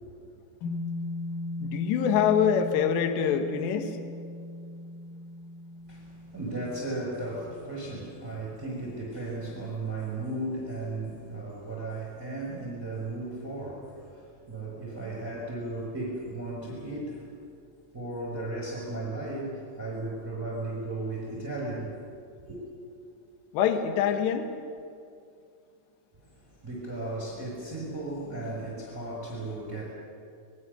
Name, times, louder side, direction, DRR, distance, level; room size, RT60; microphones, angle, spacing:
sound 1, 0.6-9.1, left 1 dB, 50° left, 5.4 m, -38 dB
voice 1, 1.6-4.0 23.5-24.5, left 8 dB, 70° left, 6 dB, 3.4 m, -25 dB
voice 2, 5.9-17.3 17.9-22.0 22.5-22.6 26.2-29.9, right 2 dB, 5° right, -4 dB, 4.9 m, -35 dB
28.5 x 21.5 x 6.8 m, 2.4 s
omnidirectional pair, 5.7 m